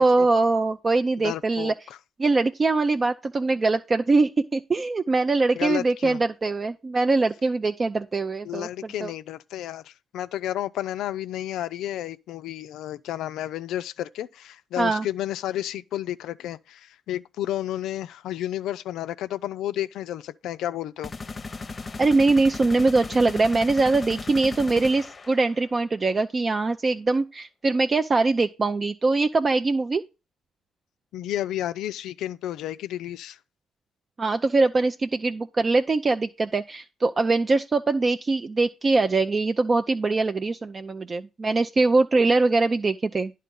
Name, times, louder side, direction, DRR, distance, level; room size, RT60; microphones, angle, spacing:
voice 1, 0.0-1.7 2.2-8.7 9.0-9.1 14.8-15.1 22.0-30.0 34.2-43.3, right 3 dB, 40° right, 0.4 m, -22 dB
voice 2, 1.2-1.7 5.6-6.2 8.4-21.1 31.1-33.4, left 12 dB, 75° left, 0.3 m, -31 dB
sound 1, 21.0-25.8, left 3 dB, 35° left, 0.7 m, -37 dB
10.0 x 3.8 x 5.2 m
hypercardioid pair, 50°, 0 cm